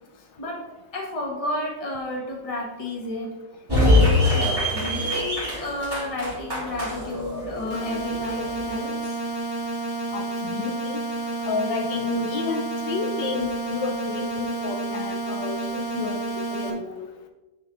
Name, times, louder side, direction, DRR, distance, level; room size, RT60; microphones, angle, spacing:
voice 1, 0.1-0.7 0.9-4.3 4.7-9.2, left 2 dB, 20° left, -1 dB, 1.0 m, -31 dB
sound 1, 3.7-8.7, left 1 dB, 10° right, 2.2 m, -23 dB
sound 2, 7.7-16.7, right 2 dB, 45° left, 1.0 m, -30 dB
voice 2, 10.1-11.0 11.4-17.1, left 5 dB, 75° left, 4 dB, 1.3 m, -31 dB
9.2 x 3.8 x 3.8 m, 1.1 s
omnidirectional pair, 2.1 m